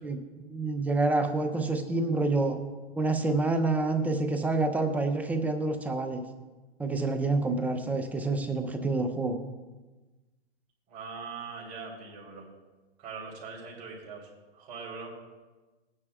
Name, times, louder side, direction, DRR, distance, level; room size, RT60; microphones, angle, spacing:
voice 1, 0.5-2.6 3.0-6.2 6.8-9.4, right 3 dB, 5° right, 7 dB, 0.4 m, -27 dB
voice 2, 10.9-12.5 13.0-15.1, right 5 dB, 40° right, -2 dB, 3.5 m, -41 dB
17.0 x 9.7 x 2.3 m, 1.2 s
hypercardioid pair, 130°, 31 cm